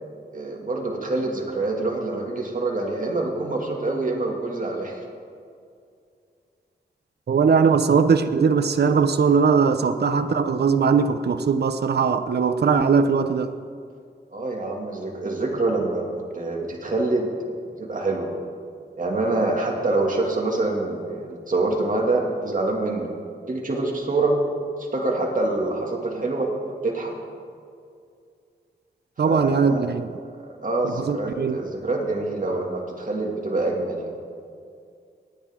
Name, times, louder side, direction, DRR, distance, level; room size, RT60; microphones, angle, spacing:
voice 1, 0.3-5.0 14.3-17.3 17.6-18.3 19.0-23.1 23.5-24.4 24.9-26.5 26.8-27.1 29.2-29.9 30.6-34.1, right 2 dB, 50° right, -1 dB, 2.3 m, -25 dB
voice 2, 7.3-13.5 29.2-30.1 30.8-31.6, right 5 dB, 70° right, 9 dB, 0.7 m, -20 dB
27.5 x 9.4 x 3.7 m, 2.3 s
wide cardioid pair, 80°, 18 cm